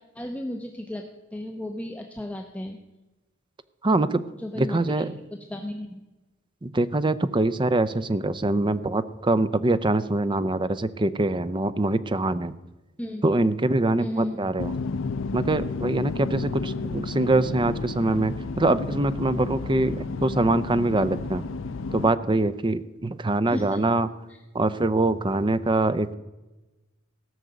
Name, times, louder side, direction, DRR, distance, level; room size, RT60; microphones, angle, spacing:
voice 1, 0.1-1.0 1.3-2.8 4.4-5.1 5.5-6.0 13.0-13.2 14.0-14.4 16.8-16.9 23.5-23.8 24.3-24.4 24.6-24.7, left 1 dB, 5° left, 3 dB, 0.8 m, -34 dB
voice 2, 3.8-4.2 4.6-5.1 6.6-12.6 13.2-14.7 15.3-21.4 21.9-24.1 24.5-26.2, right 2 dB, 25° right, 13 dB, 0.6 m, -24 dB
sound 1, 14.6-22.1, left 4 dB, 70° left, 0.5 m, -32 dB
17.5 x 6.3 x 8.0 m, 1.1 s
head